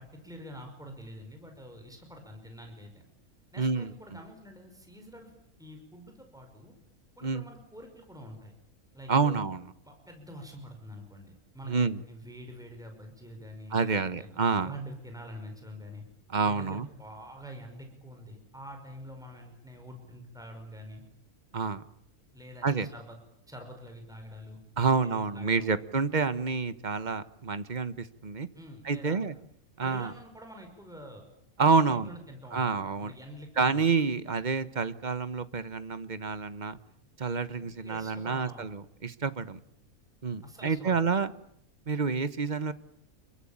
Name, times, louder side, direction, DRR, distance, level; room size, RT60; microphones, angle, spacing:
voice 1, 0.0-3.0 3.5-5.3 5.6-6.7 7.2-8.5 8.9-9.4 9.8-14.3 14.6-16.0 16.4-21.0 22.3-23.2 23.5-25.7 28.6-29.2 29.8-31.2 31.7-33.8 37.5-38.7 40.4-41.0, equal, ahead, 4 dB, 5.4 m, -46 dB
voice 2, 3.6-3.9 7.2-7.4 9.1-9.6 11.6-12.0 13.7-14.7 16.3-16.9 21.5-21.8 22.6-22.9 24.8-28.5 28.8-29.3 29.8-30.1 31.6-32.1 32.5-33.1 33.6-36.8 37.2-39.6 40.2-41.3 41.9-42.7, right 5 dB, 35° right, 13 dB, 1.3 m, -28 dB
28.5 x 23.5 x 8.8 m, 0.68 s
omnidirectional pair, 1.5 m